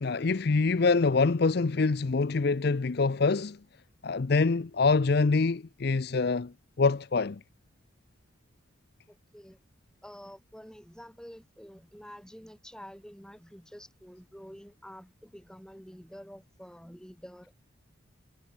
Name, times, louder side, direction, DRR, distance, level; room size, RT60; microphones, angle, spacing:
voice 1, 0.0-3.6 4.0-6.5 6.8-7.4, left 4 dB, 50° left, 0.5 m, -25 dB
voice 2, 9.1-9.6 10.0-17.5, equal, 5° left, 7.8 m, -48 dB
head